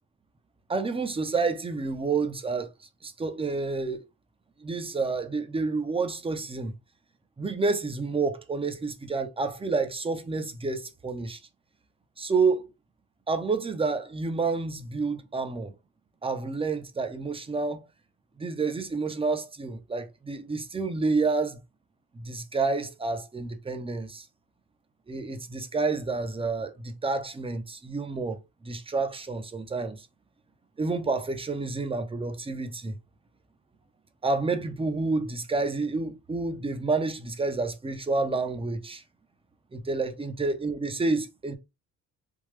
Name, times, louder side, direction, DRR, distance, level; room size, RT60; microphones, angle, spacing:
voice 1, 0.7-2.7 3.0-4.0 4.6-6.7 7.4-11.4 12.2-12.7 13.3-15.7 16.2-17.9 18.4-21.6 22.1-24.3 25.1-30.1 30.8-32.9 34.2-39.0 39.7-41.6, right 3 dB, 20° right, 0.7 m, -29 dB
3.6 x 2.2 x 3.2 m
cardioid pair, 90°, 30 cm